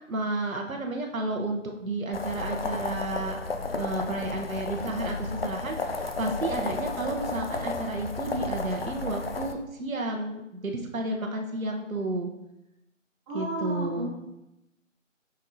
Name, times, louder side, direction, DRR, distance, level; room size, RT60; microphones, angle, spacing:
voice 1, 0.1-3.4 3.8-12.3 13.3-14.1, right 2 dB, 85° right, 2 dB, 1.1 m, -32 dB
sound 1, 2.1-9.5, left 3 dB, 50° left, 0.5 m, -33 dB
voice 2, 13.3-14.1, right 1 dB, 20° right, -8 dB, 1.8 m, -32 dB
7.2 x 5.5 x 2.7 m, 0.90 s
figure-of-eight pair, 160°, 40 cm